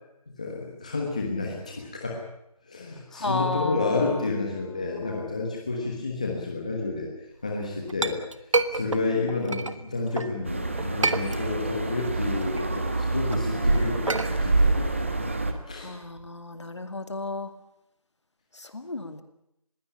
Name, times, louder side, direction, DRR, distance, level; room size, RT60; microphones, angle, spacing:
voice 1, 0.4-2.2 2.7-7.1 7.4-8.2 8.7-15.1 15.7-15.9, left 3 dB, 10° left, -1 dB, 1.3 m, -30 dB
voice 2, 3.1-5.4 8.8-9.0 15.7-17.5 18.5-19.2, left 2 dB, 50° left, 9 dB, 2.2 m, -34 dB
Chink clink, 7.5-10.3 10.8-11.8 12.2-16.3, right 3 dB, 55° right, 1.5 m, -30 dB
sound 1, 10.5-15.5, right 2 dB, 20° right, 1.2 m, -26 dB
21.0 x 16.0 x 10.0 m, 0.80 s
figure-of-eight pair, 175°, 19 cm